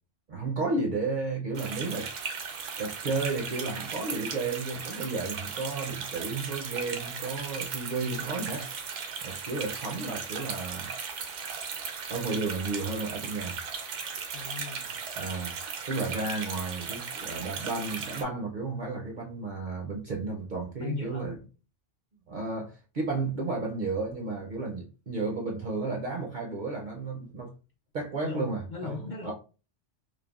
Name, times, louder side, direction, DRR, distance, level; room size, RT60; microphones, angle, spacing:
voice 1, 0.3-2.1 2.8-8.7 9.2-10.9 12.1-13.6 15.2-15.5 15.8-21.4 22.3-27.5 27.9-29.3, right 3 dB, 55° right, 0.5 m, -33 dB
sound 1, 1.5-18.2, right 6 dB, 80° right, 0.9 m, -37 dB
voice 2, 14.3-15.0 20.8-21.3 28.2-29.3, left 5 dB, 55° left, 0.5 m, -38 dB
3.3 x 2.1 x 2.3 m
omnidirectional pair, 1.2 m